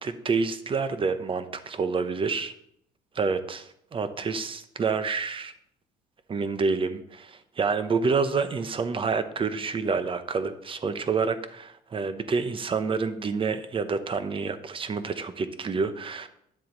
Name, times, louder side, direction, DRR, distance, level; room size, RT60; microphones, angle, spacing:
voice 1, 0.0-2.5 3.1-5.5 6.3-16.3, right 4 dB, 30° right, 10 dB, 0.9 m, -28 dB
10.5 x 7.5 x 3.9 m, 0.71 s
cardioid pair, 110°, 17 cm